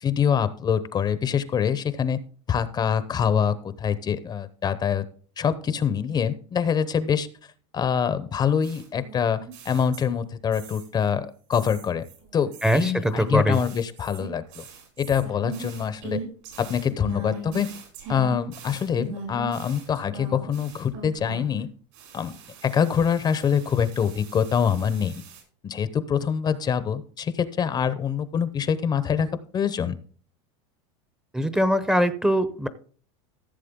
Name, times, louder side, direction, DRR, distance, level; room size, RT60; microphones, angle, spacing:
voice 1, 0.0-2.2 2.5-5.1 5.4-7.3 7.7-12.0 12.3-14.6 15.0-16.2 16.6-17.7 18.1-21.7 22.1-22.3 22.6-25.2 25.6-30.0, left 7 dB, 25° left, 14 dB, 0.8 m, -25 dB
sound 1, 8.6-10.2 10.5-11.1 11.5-21.6 21.9-25.4, right 4 dB, 70° right, 5.9 m, -41 dB
voice 2, 12.6-13.6 31.3-32.7, equal, 5° right, 13 dB, 0.8 m, -22 dB
15.0 x 7.4 x 3.7 m, 0.42 s
supercardioid pair, 125°, 16 cm